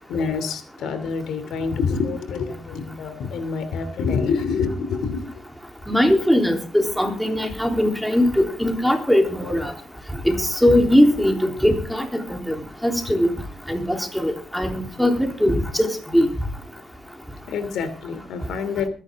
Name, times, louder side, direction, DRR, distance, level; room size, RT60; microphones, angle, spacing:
voice 1, 0.1-5.2 17.5-18.9, left 5 dB, 75° left, 11 dB, 2.9 m, -26 dB
voice 2, 5.9-9.7 10.2-12.5 12.8-13.3 13.7-16.3, equal, ahead, 4 dB, 3.6 m, -20 dB
22.5 x 10.5 x 3.7 m, 0.37 s
cardioid pair, 90°, 0 cm